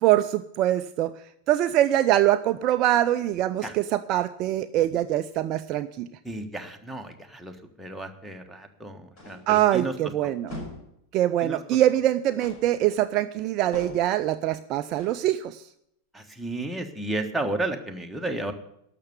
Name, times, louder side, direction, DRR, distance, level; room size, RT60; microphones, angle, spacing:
voice 1, 0.0-1.1 1.5-6.1 9.5-10.5 11.1-15.6, right 13 dB, 40° right, 11 dB, 0.4 m, -23 dB
voice 2, 6.2-9.9 10.2-10.3 11.4-11.6 16.1-18.5, right 2 dB, ahead, 2 dB, 1.4 m, -33 dB
sound 1, 9.2-9.6 10.5-10.9 12.4-12.7 13.7-14.2 14.9-15.2, left 1 dB, 40° left, 6.2 m, -40 dB
12.0 x 6.8 x 9.5 m, 0.76 s
figure-of-eight pair, 90°, 0 cm